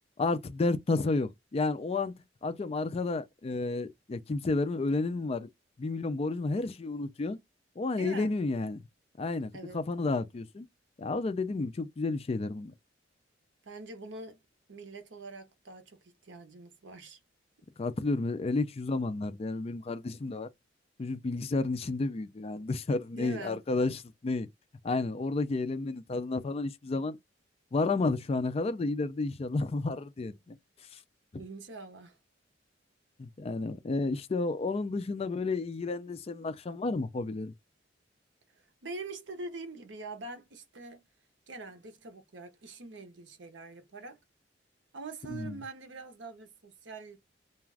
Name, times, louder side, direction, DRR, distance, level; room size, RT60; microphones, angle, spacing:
voice 1, 0.2-2.1 2.4-5.5 5.8-7.4 7.8-8.8 9.2-10.7 11.0-12.7 17.8-20.5 21.0-24.5 24.8-27.2 27.7-30.6 31.3-31.4 33.2-37.5 45.3-45.6, left 3 dB, 30° left, 0.4 m, -31 dB
voice 2, 8.0-8.3 9.5-9.8 13.6-14.4 14.7-17.2 23.1-23.6 31.4-32.2 38.5-41.0 41.5-44.2 44.9-47.2, right 3 dB, 70° right, 0.8 m, -44 dB
2.4 x 2.3 x 3.3 m
head